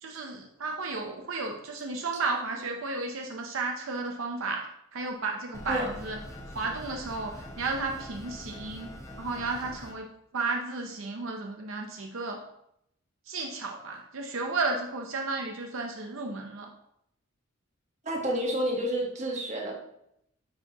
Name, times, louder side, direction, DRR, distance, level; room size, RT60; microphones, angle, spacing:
voice 1, 0.0-6.2 6.5-8.9 9.2-10.1 10.3-12.4 13.3-16.7, right 3 dB, 75° right, 2 dB, 0.7 m, -33 dB
sound 1, 5.5-9.9, left 1 dB, 15° left, 0.7 m, -43 dB
voice 2, 18.0-19.7, right 1 dB, 35° right, -1 dB, 1.3 m, -29 dB
9.4 x 4.5 x 2.9 m, 0.78 s
head